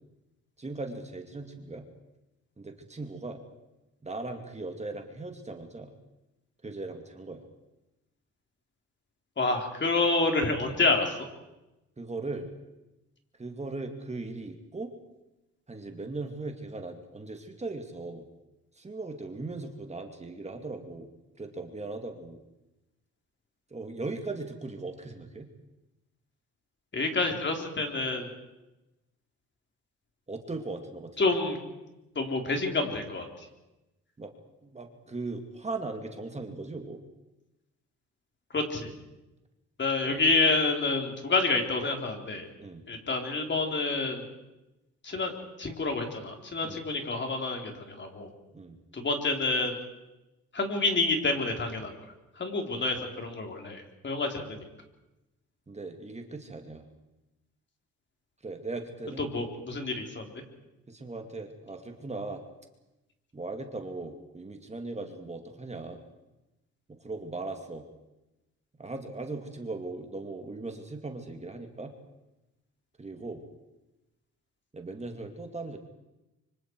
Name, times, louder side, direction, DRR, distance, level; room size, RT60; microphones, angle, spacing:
voice 1, 0.6-1.9 2.6-3.4 4.0-5.9 6.6-7.5 12.0-12.5 13.4-14.9 15.7-18.3 18.7-21.1 21.4-22.4 23.7-25.5 30.3-31.3 34.2-34.3 34.6-37.0 40.0-40.2 42.6-42.8 46.6-46.8 48.5-48.8 55.7-56.9 58.4-59.3 60.9-62.4 63.3-66.0 66.9-67.8 68.8-71.9 73.0-73.4 74.7-75.8, right 3 dB, 20° right, 4 dB, 2.4 m, -38 dB
voice 2, 9.4-11.2 26.9-28.3 31.2-31.6 32.2-33.3 38.5-38.9 39.8-42.5 42.9-44.2 45.0-45.3 45.6-48.3 48.9-49.8 50.5-51.9 52.4-54.6 59.2-60.3, left 3 dB, 40° left, 3 dB, 3.9 m, -28 dB
25.0 x 25.0 x 4.8 m, 0.98 s
cardioid pair, 90°, 30 cm